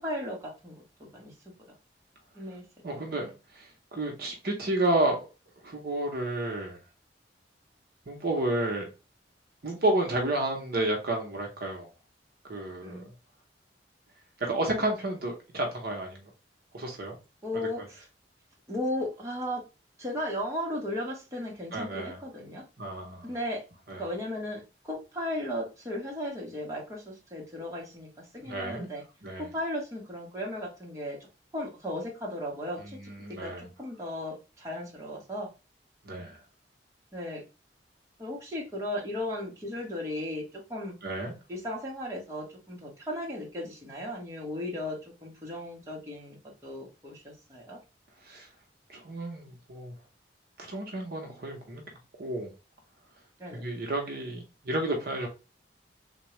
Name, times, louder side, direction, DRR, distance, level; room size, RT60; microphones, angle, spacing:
voice 1, 0.0-1.3 2.3-2.6 2.9-3.2 12.8-13.1 17.4-18.0 18.7-19.6 20.0-22.6 23.2-23.6 23.9-29.0 29.4-31.2 31.5-33.0 33.4-35.5 37.1-37.4 38.2-40.9 41.5-46.4 46.6-47.8 53.4-53.7, left 1 dB, 15° right, 1.1 m, -36 dB
voice 2, 2.8-5.3 5.6-6.8 8.1-8.9 9.6-11.9 12.5-13.1 14.4-16.3 16.7-17.2 21.7-22.2 22.8-23.3 23.9-24.1 28.4-28.9 29.2-29.5 32.8-33.7 36.0-36.4 41.0-41.3 48.2-48.5 48.9-49.9 50.6-51.8 52.2-52.5 53.5-55.3, right 1 dB, 60° right, 0.8 m, -31 dB
3.5 x 2.3 x 3.0 m
head